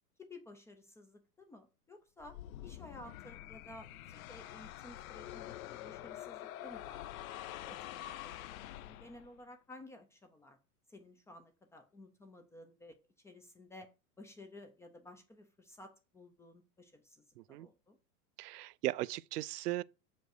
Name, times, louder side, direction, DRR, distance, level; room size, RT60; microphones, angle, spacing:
voice 1, 0.2-2.4 2.6-7.2 7.7-10.6 10.9-12.9 13.2-13.9 14.2-18.0, left 1 dB, 5° left, 0.3 m, -54 dB
sound 1, 2.2-9.4, left 13 dB, 65° left, 0.8 m, -46 dB
voice 2, 17.4-17.7 18.4-19.8, right 16 dB, 85° right, 0.6 m, -37 dB
6.4 x 5.3 x 6.4 m
supercardioid pair, 135°, 45 cm